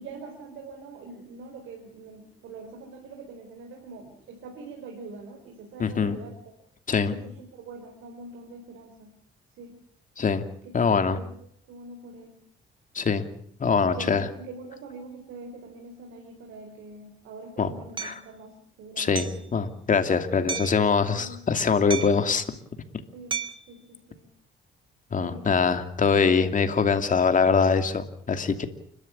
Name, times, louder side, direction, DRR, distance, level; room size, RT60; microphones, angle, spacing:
voice 1, 0.0-6.4 7.1-9.1 9.6-9.7 10.6-12.4 13.8-19.4 21.0-21.6 23.1-23.4 23.7-24.3 25.2-25.6, right 3 dB, 85° right, 3 dB, 4.4 m, -44 dB
voice 2, 5.8-6.2 6.9-7.1 10.2-10.4 10.7-11.2 12.9-13.2 13.6-14.3 17.6-17.7 18.0-18.2 19.0-22.4 25.1-28.7, left 5 dB, 40° left, 8 dB, 2.7 m, -23 dB
Hammer, 18.0-18.2 19.2-19.5 20.5-20.8 21.9-22.3 23.3-23.7, right 6 dB, 25° right, 1.9 m, -32 dB
29.5 x 13.0 x 8.7 m, 0.64 s
cardioid pair, 90°, 20 cm